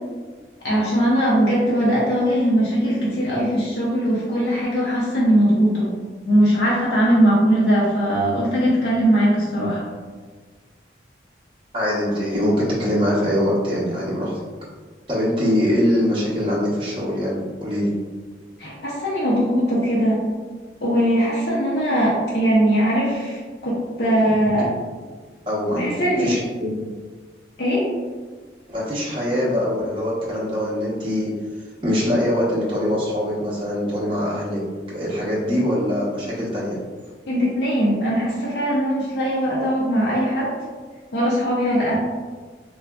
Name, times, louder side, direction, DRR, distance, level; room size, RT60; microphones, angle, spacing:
voice 1, 0.6-5.9 6.2-9.9 18.6-20.2 20.8-24.6 25.7-26.3 27.6-27.9 37.3-40.5 41.1-41.9, equal, 60° left, -6 dB, 0.6 m, -20 dB
voice 2, 11.7-14.3 15.1-17.9 25.5-26.8 28.7-31.3 31.8-36.8, equal, 30° right, -7 dB, 0.8 m, -23 dB
3.8 x 2.4 x 2.2 m, 1.5 s
head